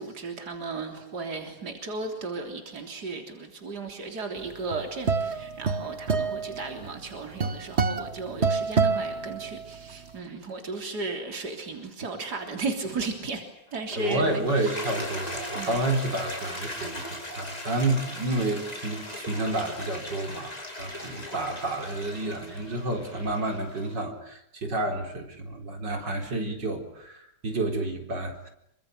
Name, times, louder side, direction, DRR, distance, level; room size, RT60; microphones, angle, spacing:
voice 1, 0.0-13.4 13.7-15.0 15.5-15.8, right 3 dB, 65° right, 4 dB, 4.0 m, -35 dB
sound 1, 4.5-9.9, right 5 dB, 40° right, 1.8 m, -27 dB
Toilet flush, 13.7-24.0, left 1 dB, 20° left, 4.4 m, -38 dB
voice 2, 14.0-28.5, right 2 dB, 85° right, 3 dB, 4.7 m, -30 dB
27.5 x 25.0 x 8.0 m, 0.76 s
omnidirectional pair, 1.9 m